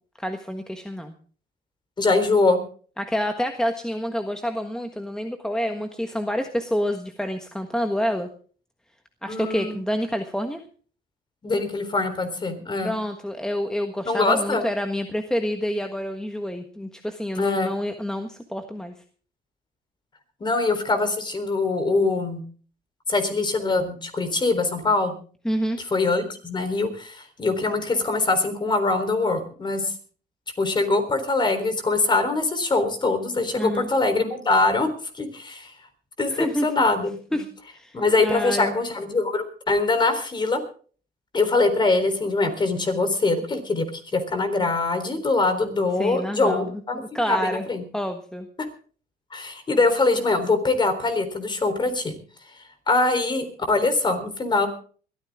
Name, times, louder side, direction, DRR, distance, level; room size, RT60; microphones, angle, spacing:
voice 1, 0.2-1.1 3.0-8.3 9.2-10.6 12.8-18.9 25.4-25.8 33.6-33.9 36.3-36.7 37.3-38.7 46.0-46.7 47.1-47.6 47.9-48.5, equal, 5° left, 6 dB, 1.4 m, -28 dB
voice 2, 2.0-2.6 9.3-9.8 11.4-12.9 14.1-14.6 17.4-17.7 20.4-22.4 23.1-25.1 25.9-29.9 30.6-34.9 35.1-35.7 36.2-37.4 37.9-40.6 41.3-43.9 44.1-47.0 47.3-47.8 49.3-52.1 52.9-54.7, left 3 dB, 25° left, 9 dB, 3.8 m, -23 dB
21.5 x 14.0 x 3.6 m, 0.42 s
cardioid pair, 110°, 17 cm